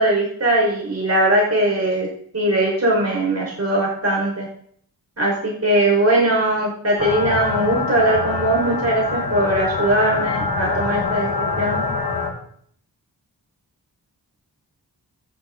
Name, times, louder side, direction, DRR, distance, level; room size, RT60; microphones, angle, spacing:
voice 1, 0.0-2.1 2.3-4.5 5.2-11.3 11.6-11.8, right 1 dB, 40° right, -2 dB, 4.9 m, -20 dB
sound 1, 7.0-12.3, left 4 dB, 85° left, 7.4 m, -24 dB
25.0 x 9.2 x 4.0 m, 0.64 s
wide cardioid pair, 80°, 38 cm